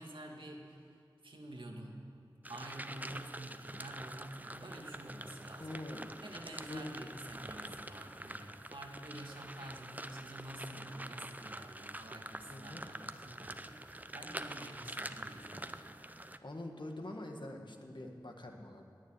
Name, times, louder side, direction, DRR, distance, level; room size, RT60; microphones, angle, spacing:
voice 1, 0.0-2.0 2.5-5.8 6.2-16.0, right 1 dB, 85° right, 0 dB, 1.9 m, -49 dB
sound 1, 2.4-16.4, right 1 dB, 20° right, 0.6 m, -46 dB
sound 2, 5.5-15.8, left 1 dB, 80° left, 2.3 m, -67 dB
voice 2, 5.6-6.1 6.7-6.8 12.5-12.8 16.4-18.8, left 1 dB, 65° left, 2 dB, 1.7 m, -44 dB
19.5 x 7.0 x 9.0 m, 2.3 s
wide cardioid pair, 50°, 8 cm